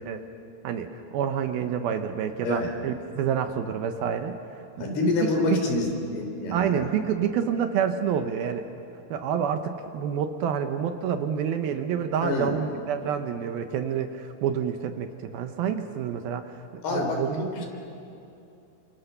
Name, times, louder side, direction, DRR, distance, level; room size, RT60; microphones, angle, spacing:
voice 1, 0.6-5.6 6.5-8.6 9.1-17.5, right 8 dB, 75° right, 7 dB, 2.5 m, -28 dB
voice 2, 4.8-6.9 12.2-12.5 16.8-17.7, left 3 dB, 65° left, 2 dB, 5.4 m, -27 dB
29.5 x 27.0 x 6.8 m, 2.7 s
omnidirectional pair, 4.9 m